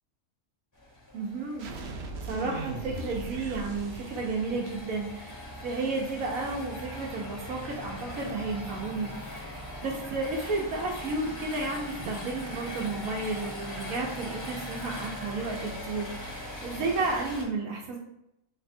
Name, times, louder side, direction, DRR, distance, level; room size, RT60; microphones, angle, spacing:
sound 1, 0.7-17.4, left 1 dB, 20° left, 0.5 m, -40 dB
voice 1, 1.1-1.9 2.2-9.5 9.8-18.0, right 3 dB, 90° right, 0 dB, 1.1 m, -32 dB
sound 2, 1.6-5.3, right 2 dB, 65° right, 0.7 m, -39 dB
3.2 x 2.2 x 4.2 m, 0.82 s
omnidirectional pair, 1.4 m